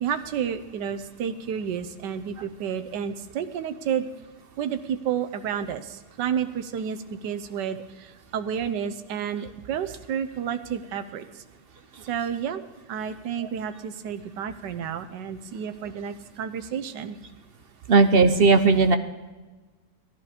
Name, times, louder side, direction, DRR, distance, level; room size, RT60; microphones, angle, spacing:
voice 1, 0.0-4.1 4.6-11.4 12.0-12.6 12.9-17.2, right 8 dB, 80° right, 9 dB, 1.5 m, -31 dB
voice 2, 17.9-19.0, right 4 dB, 50° right, 8 dB, 0.7 m, -17 dB
18.0 x 11.5 x 5.1 m, 1.3 s
omnidirectional pair, 1.9 m